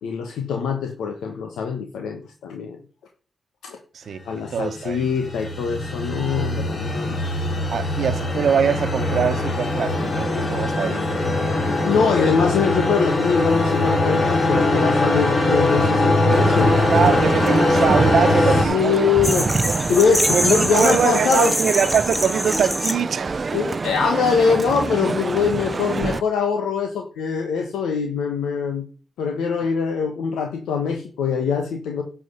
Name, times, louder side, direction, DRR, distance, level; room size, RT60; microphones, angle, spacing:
voice 1, 0.0-2.8 3.6-3.8 4.3-7.2 7.8-8.0 11.6-16.9 18.6-19.6 19.9-21.5 23.5-28.8 29.2-32.0, left 6 dB, 85° left, 1.3 m, -23 dB
voice 2, 3.9-5.1 7.7-11.5 16.9-19.1 20.3-23.6, right 7 dB, 65° right, 1.0 m, -23 dB
sound 1, 4.5-18.6, left 2 dB, 55° left, 4.0 m, -21 dB
Male speech man speaking, 16.3-26.2, right 4 dB, 40° right, 0.5 m, -26 dB
sound 2, 19.2-22.9, equal, 5° left, 2.7 m, -24 dB
11.0 x 6.3 x 8.1 m
cardioid pair, 65°, 0 cm